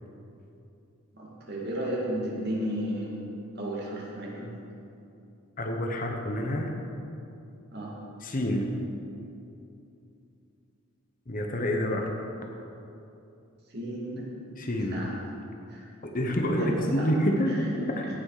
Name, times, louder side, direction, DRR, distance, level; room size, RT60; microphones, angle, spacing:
voice 1, 1.1-3.2 3.6-4.5 7.7-7.9 13.7-14.3 14.9-15.1 15.7-15.9 16.6-17.1 17.5-17.6, equal, 45° right, -4 dB, 2.2 m, -33 dB
voice 2, 5.6-6.8 8.2-8.8 11.3-12.1 14.6-15.0 16.0-18.1, equal, 40° left, 2 dB, 0.9 m, -28 dB
17.0 x 6.2 x 4.9 m, 2.7 s
head